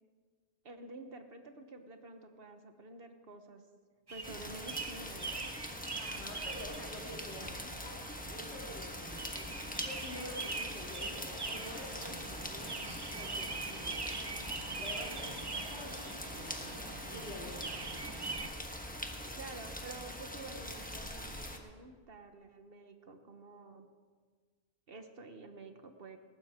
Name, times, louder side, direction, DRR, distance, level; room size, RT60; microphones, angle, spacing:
voice 1, 0.6-3.6 4.1-5.5 19.3-23.9 24.9-26.2, right 3 dB, 60° right, 7 dB, 1.3 m, -50 dB
sound 1, 4.1-18.5, right 3 dB, 25° right, 0.7 m, -43 dB
sound 2, 4.2-21.6, left 1 dB, 10° left, 1.2 m, -43 dB
voice 2, 5.9-7.9 8.3-12.9 13.1-17.8 18.9-19.6, equal, 80° left, -3 dB, 3.2 m, -49 dB
19.0 x 15.0 x 3.6 m, 1.5 s
omnidirectional pair, 1.1 m